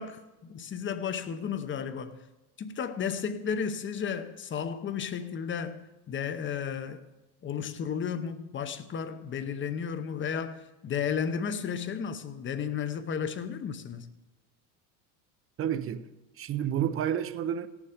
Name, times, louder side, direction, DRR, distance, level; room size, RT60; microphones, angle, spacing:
voice 1, 0.0-2.2 2.6-7.1 7.4-14.1, left 7 dB, 25° left, 0.8 m, -33 dB
voice 2, 15.6-16.1 16.4-17.7, right 9 dB, 30° right, 0.6 m, -30 dB
16.5 x 7.2 x 5.1 m
supercardioid pair, 115°, 48 cm